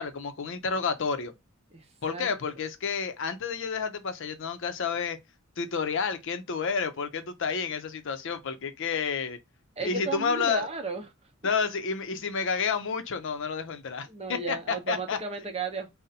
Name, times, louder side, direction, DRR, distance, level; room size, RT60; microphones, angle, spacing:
voice 1, 0.0-1.3 2.0-5.2 5.6-9.4 9.8-10.7 11.4-15.2, left 5 dB, 60° left, 0.5 m, -30 dB
voice 2, 1.7-2.3 9.8-11.0 14.1-15.9, right 3 dB, 30° right, 0.7 m, -34 dB
2.6 x 2.1 x 3.9 m
head